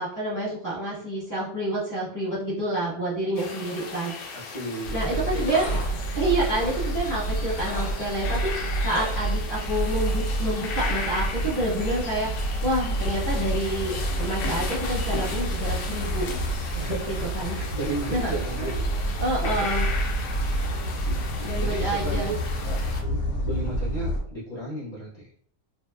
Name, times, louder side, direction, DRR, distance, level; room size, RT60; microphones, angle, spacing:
voice 1, 0.0-4.4 4.9-5.6 6.1-8.5 8.8-16.2 17.3-17.6 18.1-18.7 19.2-19.9 21.0-21.1 21.4-22.3, right 1 dB, 10° left, -10 dB, 1.0 m, -28 dB
sound 1, 3.4-23.0, left 4 dB, 80° left, 1.3 m, -37 dB
voice 2, 4.3-5.8 16.7-19.1 19.4-19.7 21.5-22.3 22.6-25.3, right 2 dB, 50° right, -9 dB, 0.4 m, -34 dB
sound 2, 4.8-24.2, right 1 dB, 60° left, 1.2 m, -28 dB
2.9 x 2.5 x 2.3 m, 0.64 s
omnidirectional pair, 2.0 m